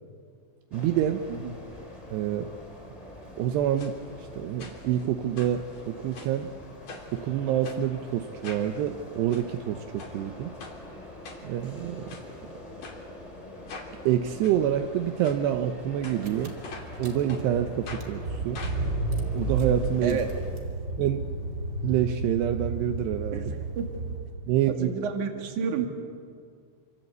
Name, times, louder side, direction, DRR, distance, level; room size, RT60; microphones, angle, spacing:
sound 1, 0.7-20.5, left 1 dB, 10° left, 2.4 m, -45 dB
voice 1, 0.7-1.2 2.1-2.5 3.4-3.9 4.2-6.5 7.1-10.5 11.4-12.1 14.1-16.5 17.0-18.6 19.3-20.2 21.0-21.2 21.8-23.5 24.5-24.9, right 11 dB, 80° right, 6 dB, 2.9 m, -27 dB
sound 2, 3.8-3.9 4.6-5.0 5.4-6.4 6.9-7.2 7.6-7.8 8.4-8.7 9.1-9.4 10.0-10.2 10.6-10.8 11.2-11.7 12.1-12.3 12.8-13.0 13.7-13.9 14.4-14.6 15.2-15.4 16.0-17.0 17.3-17.4 17.9-18.1 18.5-20.1 20.4-20.5 20.7-20.8, left 4 dB, 40° left, 3.9 m, -43 dB
Car / Engine, 15.9-16.0 16.2-24.6, right 2 dB, 30° right, 2.4 m, -32 dB
voice 2, 23.3-23.9 24.7-25.9, right 6 dB, 50° right, 4 dB, 3.2 m, -30 dB
27.5 x 26.5 x 8.2 m, 2.2 s
omnidirectional pair, 5.1 m